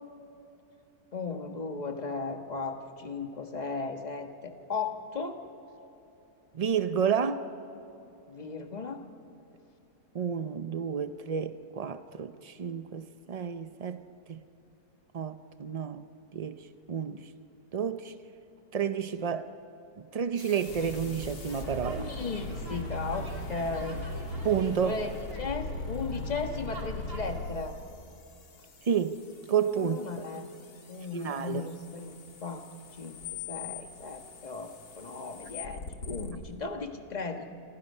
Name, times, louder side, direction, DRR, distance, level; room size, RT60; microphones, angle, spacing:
voice 1, 1.1-5.4 8.3-9.0 22.0-24.0 24.8-25.1 25.4-27.8 29.8-30.4 30.9-32.7 33.0-37.5, left 4 dB, 25° left, 1.5 m, -36 dB
voice 2, 6.5-7.5 10.1-14.0 14.3-14.4 15.1-16.6 16.9-17.2 17.7-18.1 18.7-19.5 20.0-22.1 24.4-25.0 28.9-29.2 29.5-30.2 31.1-31.6, right 7 dB, 80° right, 0.3 m, -30 dB
sound 1, 20.4-36.3, left 3 dB, 70° left, 2.3 m, -41 dB
sound 2, 20.6-27.4, equal, 50° right, 3.1 m, -43 dB
27.0 x 26.5 x 5.5 m
omnidirectional pair, 1.7 m